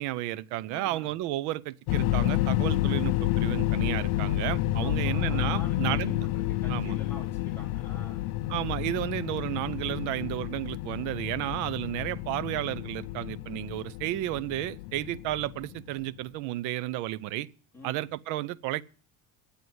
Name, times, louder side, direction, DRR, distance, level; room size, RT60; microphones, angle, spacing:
voice 1, 0.0-6.3 6.7-7.0 8.5-17.5 17.8-18.8, right 15 dB, 50° right, 0.5 m, -32 dB
voice 2, 0.7-1.1 4.8-6.1 6.5-8.3 17.7-18.0, left 1 dB, 5° left, 2.9 m, -46 dB
sound 1, 1.9-15.9, left 16 dB, 70° left, 0.5 m, -30 dB
9.3 x 8.5 x 7.8 m
cardioid pair, 180°, 39 cm